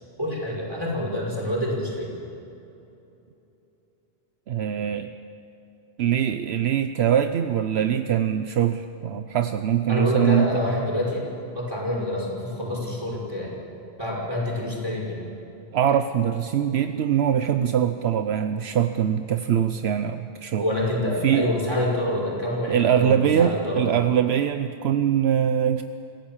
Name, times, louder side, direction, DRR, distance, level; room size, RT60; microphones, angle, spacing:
voice 1, 0.2-2.1 9.9-11.3 11.5-13.5 14.0-15.2 20.6-23.9, left 1 dB, 20° right, -4 dB, 5.5 m, -27 dB
voice 2, 4.5-5.1 6.0-10.5 15.7-20.6 21.2-21.5 22.7-25.8, right 9 dB, 75° right, 9 dB, 0.9 m, -22 dB
26.5 x 16.5 x 7.3 m, 2.9 s
omnidirectional pair, 1.1 m